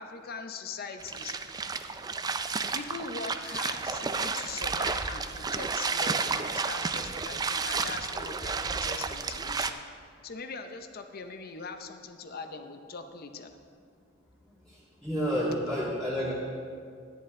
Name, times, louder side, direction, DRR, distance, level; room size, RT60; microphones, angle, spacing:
voice 1, 0.0-1.3 2.7-9.8 10.2-13.6, left 4 dB, 50° left, 7 dB, 0.6 m, -41 dB
sound 1, 1.0-9.7, right 4 dB, 20° right, 0.3 m, -32 dB
voice 2, 15.0-16.3, equal, ahead, -11 dB, 1.9 m, -29 dB
11.0 x 9.8 x 3.7 m, 2.2 s
head